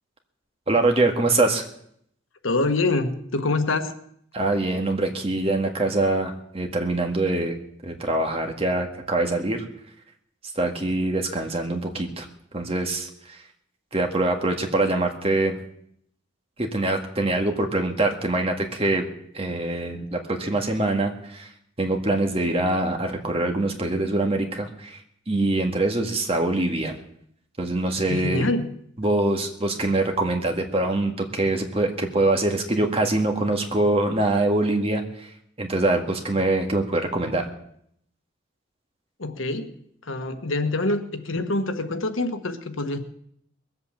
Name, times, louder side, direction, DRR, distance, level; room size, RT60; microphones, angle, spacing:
voice 1, 0.7-1.7 4.3-7.6 7.8-9.6 10.6-12.3 12.5-13.1 13.9-15.6 16.6-19.0 19.3-21.5 21.8-25.0 25.3-27.0 27.6-28.5 29.0-35.3 35.6-37.4, right 2 dB, 30° right, 3 dB, 1.8 m, -24 dB
voice 2, 2.4-4.0 28.1-28.8 39.2-39.7 40.0-43.0, left 2 dB, 85° left, 8 dB, 1.4 m, -25 dB
20.5 x 8.2 x 7.4 m, 0.70 s
head